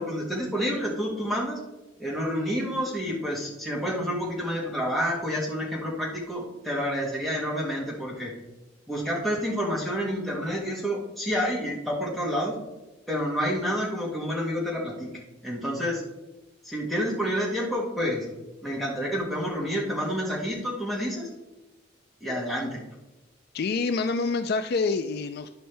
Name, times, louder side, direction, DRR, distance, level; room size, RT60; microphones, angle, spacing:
voice 1, 0.0-1.6 2.0-8.3 8.9-12.5 13.1-16.0 16.6-18.3 18.6-21.3 22.2-22.8, equal, ahead, -4 dB, 1.7 m, -29 dB
voice 2, 23.5-25.6, left 4 dB, 55° left, 9 dB, 0.4 m, -27 dB
11.0 x 5.2 x 3.3 m, 1.0 s
head